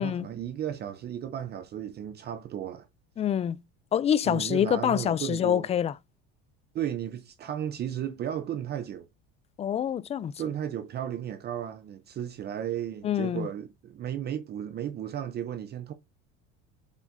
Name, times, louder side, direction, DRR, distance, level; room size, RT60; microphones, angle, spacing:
voice 1, 0.0-2.9 4.2-5.7 6.7-9.1 10.4-15.9, right 10 dB, 35° right, 0.7 m, -34 dB
voice 2, 3.2-3.6 3.9-5.9 9.6-10.3 13.0-13.5, left 9 dB, 20° left, 0.4 m, -26 dB
7.4 x 7.3 x 2.6 m
cardioid pair, 135°, 29 cm